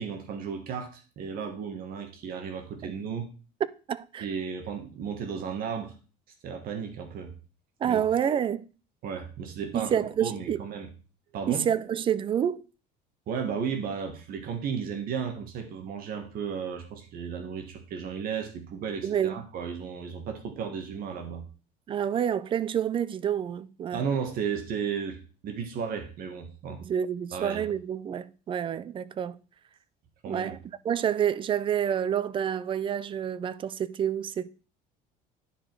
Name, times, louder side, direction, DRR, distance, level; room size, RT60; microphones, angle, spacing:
voice 1, 0.0-3.3 4.2-5.9 6.4-7.3 7.8-8.0 9.0-9.9 10.2-10.9 11.3-11.7 13.3-21.4 23.9-26.8 27.3-27.7 30.2-30.6, right 6 dB, 50° right, 1.5 m, -34 dB
voice 2, 3.9-4.3 7.8-8.7 9.7-10.6 11.5-12.6 19.0-19.4 21.9-24.0 26.8-29.4 30.3-30.6 30.8-34.5, right 9 dB, 30° right, 0.4 m, -28 dB
10.0 x 5.0 x 4.6 m
cardioid pair, 145°, 18 cm